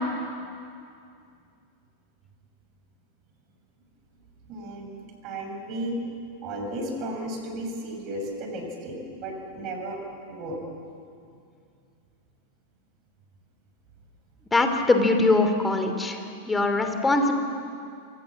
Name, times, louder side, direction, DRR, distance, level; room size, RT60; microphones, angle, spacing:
voice 1, 4.5-6.0 6.4-10.0 10.3-10.6, right 1 dB, 40° right, 2 dB, 6.3 m, -34 dB
voice 2, 14.5-16.2 16.5-17.4, left 2 dB, 10° left, 6 dB, 3.0 m, -22 dB
26.5 x 24.0 x 7.4 m, 2.4 s
figure-of-eight pair, 90°, 0 cm